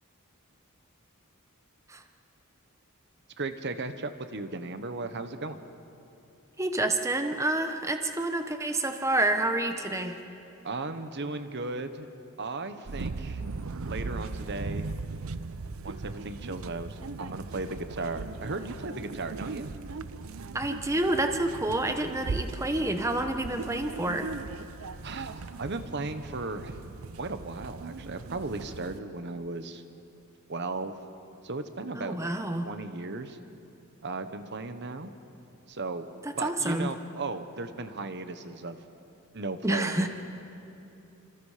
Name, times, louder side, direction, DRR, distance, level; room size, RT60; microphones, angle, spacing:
voice 1, 3.4-5.6 10.6-12.1 12.4-13.4 13.8-14.9 15.8-19.7 25.0-26.8 27.2-29.8 30.5-30.9 31.4-32.3 32.6-33.4 34.0-35.1 35.7-36.1 36.3-38.8 39.3-40.1, right 3 dB, 50° right, 9 dB, 1.1 m, -36 dB
voice 2, 6.6-10.2 20.5-24.3 31.9-32.7 36.2-36.9 39.6-40.1, right 1 dB, 15° right, 6 dB, 1.0 m, -28 dB
sound 1, 12.9-29.0, right 3 dB, 70° right, 0.6 m, -38 dB
28.0 x 26.5 x 5.0 m, 2.8 s
head